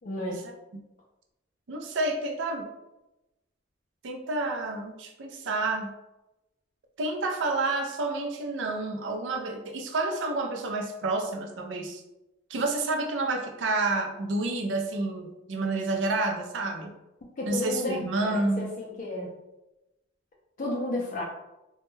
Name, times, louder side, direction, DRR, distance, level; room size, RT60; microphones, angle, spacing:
voice 1, 0.0-0.4 17.4-19.3 20.6-21.2, left 1 dB, 45° left, -2 dB, 0.4 m, -32 dB
voice 2, 1.7-2.7 4.0-5.9 7.0-12.0 12.5-16.9 17.5-18.7, right 2 dB, 80° right, 3 dB, 0.4 m, -29 dB
2.2 x 2.1 x 3.1 m, 0.96 s
head